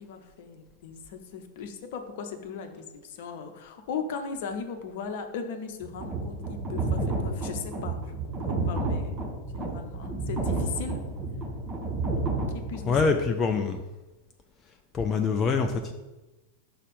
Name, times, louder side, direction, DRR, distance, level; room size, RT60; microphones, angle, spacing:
voice 1, 0.0-9.2 9.5-11.0 12.5-13.1, left 6 dB, 55° left, 6 dB, 0.8 m, -38 dB
sound 1, 5.8-13.0, right 3 dB, 25° right, 1.5 m, -30 dB
voice 2, 12.9-13.8 14.9-15.9, left 5 dB, 25° left, 5 dB, 0.4 m, -25 dB
5.9 x 4.2 x 5.3 m, 1.1 s
figure-of-eight pair, 90°, 0 cm